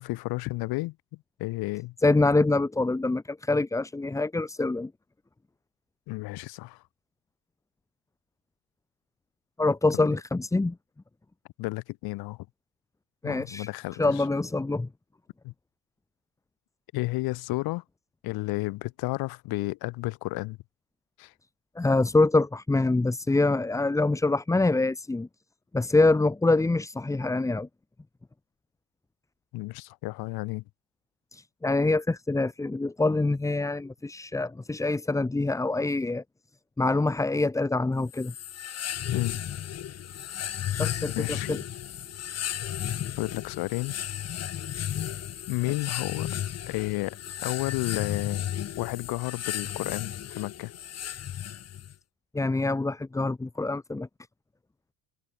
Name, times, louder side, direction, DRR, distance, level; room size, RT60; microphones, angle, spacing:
voice 1, 0.0-1.9 6.1-6.8 9.9-10.1 11.6-12.5 13.2-14.2 15.4-15.5 16.9-17.8 18.2-20.6 21.2-21.3 29.5-30.6 39.1-39.4 41.1-41.6 43.2-44.0 45.5-46.3 46.7-48.5 48.8-50.7, left 21 dB, 85° left, 6.0 m, -32 dB
voice 2, 2.0-4.9 9.6-10.8 13.2-13.7 14.0-14.9 21.8-25.3 25.7-27.7 31.3-36.2 36.8-38.3 40.8-41.6 45.8-45.9 52.3-54.1, left 2 dB, 10° left, 1.0 m, -25 dB
sound 1, 38.1-51.9, left 10 dB, 45° left, 3.1 m, -34 dB
open air
cardioid pair, 135°, 36 cm